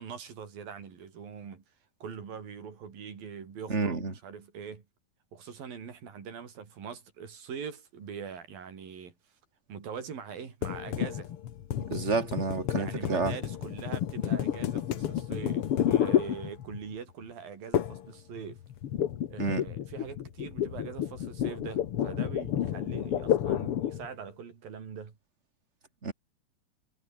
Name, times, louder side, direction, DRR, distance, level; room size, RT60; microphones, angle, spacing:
voice 1, 0.0-1.6 2.0-4.8 5.3-9.1 9.7-11.3 12.8-18.6 19.3-25.2, right 7 dB, 85° right, 5.6 m, -42 dB
voice 2, 3.7-4.1 11.9-13.3 19.4-19.6 26.0-26.1, right 4 dB, 20° right, 2.6 m, -29 dB
sound 1, 10.6-16.9 17.7-18.1 18.4-24.1, left 10 dB, 60° left, 1.6 m, -30 dB
omnidirectional pair, 4.0 m